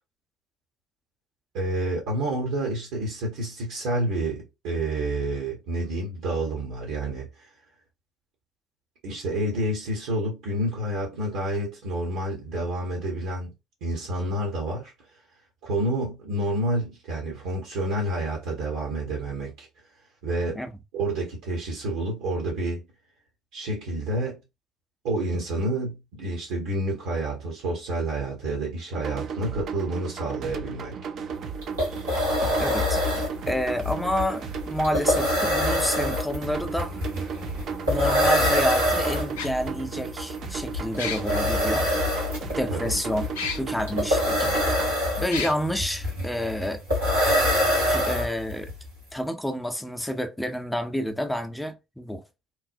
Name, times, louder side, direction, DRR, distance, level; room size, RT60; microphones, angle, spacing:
voice 1, 1.5-7.5 9.0-13.5 13.8-14.9 15.6-19.7 20.2-20.6 20.9-22.8 23.5-24.4 25.0-31.0 42.7-42.9, right 1 dB, 65° right, 0.8 m, -29 dB
sound 1, 28.9-44.9, right 6 dB, 45° right, 0.4 m, -35 dB
sound 2, 31.3-31.4 31.6-48.7, left 1 dB, 80° right, 1.5 m, -25 dB
voice 2, 32.6-33.0 33.5-37.0 37.9-41.9 42.6-43.2 43.5-44.8 45.2-46.8 47.9-48.7 49.1-52.2, equal, 5° left, 0.5 m, -29 dB
sound 3, 36.8-36.9 38.3-38.4 39.4-39.5 41.0-41.4 43.4-43.6 44.2-44.3 45.3-45.5, left 6 dB, 75° left, 0.4 m, -30 dB
3.0 x 2.0 x 2.5 m
figure-of-eight pair, 55°, 0 cm